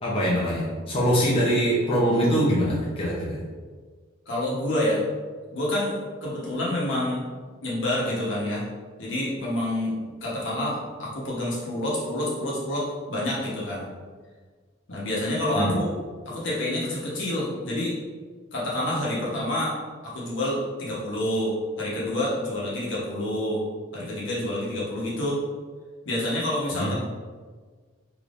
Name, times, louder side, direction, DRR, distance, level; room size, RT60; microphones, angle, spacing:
voice 1, 0.0-3.4 15.6-15.7 26.7-26.9, equal, 30° left, -7 dB, 0.6 m, -23 dB
voice 2, 4.3-5.0 5.5-7.2 7.6-8.7 9.0-9.9 10.2-13.8 14.9-15.9 16.3-18.0 18.5-19.8 20.0-23.6 23.9-25.4 26.0-26.9, left 1 dB, 70° left, -6 dB, 1.0 m, -28 dB
3.4 x 3.0 x 2.5 m, 1.5 s
head